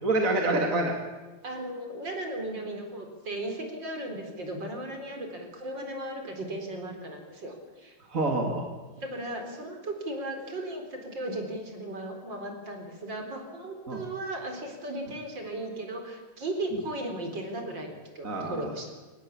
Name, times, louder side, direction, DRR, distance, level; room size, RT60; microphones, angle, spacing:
voice 1, 0.0-0.9 8.1-8.7 13.9-14.0 16.7-16.8 18.2-18.7, right 2 dB, 40° right, 2 dB, 2.6 m, -27 dB
voice 2, 1.4-8.0 9.0-18.9, right 1 dB, 60° right, 4 dB, 4.8 m, -36 dB
24.0 x 19.0 x 8.6 m, 1.2 s
omnidirectional pair, 2.2 m